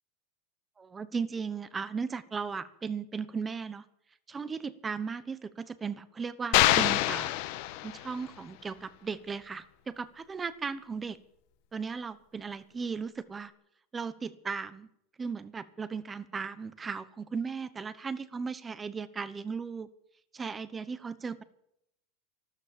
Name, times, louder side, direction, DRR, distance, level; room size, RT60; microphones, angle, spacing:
voice 1, 0.8-3.8 4.3-7.3 7.8-11.2 11.7-13.5 13.9-14.9 15.2-19.9 20.3-21.4, right 5 dB, 15° right, 15 dB, 0.9 m, -36 dB
sound 1, 6.5-8.3, left 16 dB, 55° left, 1.2 m, -25 dB
13.0 x 13.0 x 7.3 m, 0.76 s
supercardioid pair, 150°, 0 cm